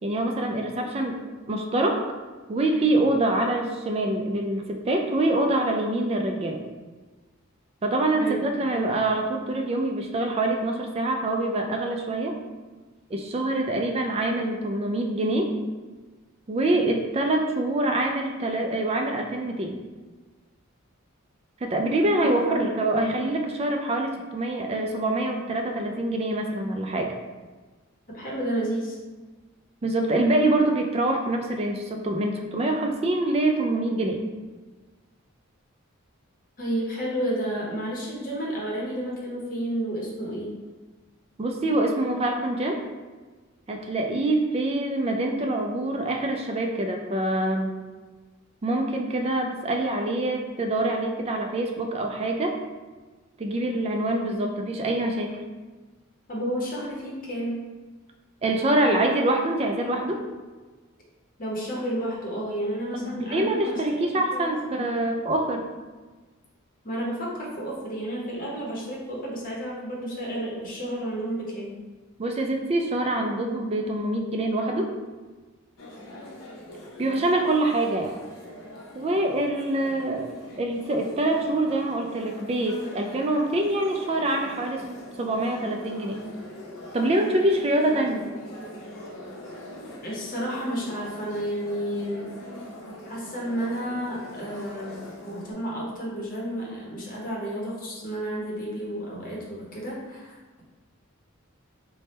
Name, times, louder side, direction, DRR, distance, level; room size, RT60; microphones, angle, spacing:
voice 1, 0.0-1.2 1.5-2.0 2.5-6.6 7.8-12.4 13.1-15.5 16.5-19.8 21.6-27.1 29.8-34.2 41.4-42.8 43.7-47.8 48.6-52.6 53.4-55.4 58.4-60.2 62.9-65.7 72.2-75.0 77.0-78.2 78.9-84.9 85.2-86.2 86.9-88.3, right 1 dB, 30° right, 3 dB, 0.3 m, -25 dB
voice 2, 22.2-22.7 28.1-29.0 36.6-40.5 56.3-57.6 61.4-64.0 64.3-64.9 66.8-71.8 90.0-92.3 93.0-100.4, equal, 40° left, -4 dB, 0.8 m, -31 dB
sound 1, 75.8-95.5, left 1 dB, 75° left, 0.8 m, -43 dB
3.3 x 2.1 x 4.1 m, 1.3 s
head